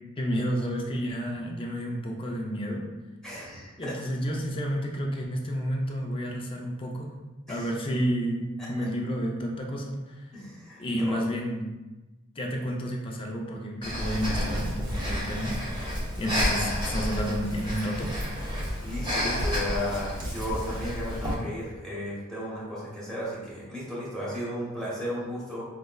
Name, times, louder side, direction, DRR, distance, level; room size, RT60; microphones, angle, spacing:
voice 1, 0.2-2.9 3.8-7.1 7.5-10.2 10.8-11.7 12.4-15.5 16.2-18.1, equal, 25° left, 0 dB, 0.4 m, -30 dB
voice 2, 3.2-4.0 7.5-7.7 8.8-8.9 10.3-11.2 18.8-25.7, equal, 5° left, -8 dB, 1.0 m, -34 dB
Breathing, 13.8-21.3, equal, 25° right, 0.8 m, -30 dB
4.8 x 2.1 x 2.2 m, 1.1 s
head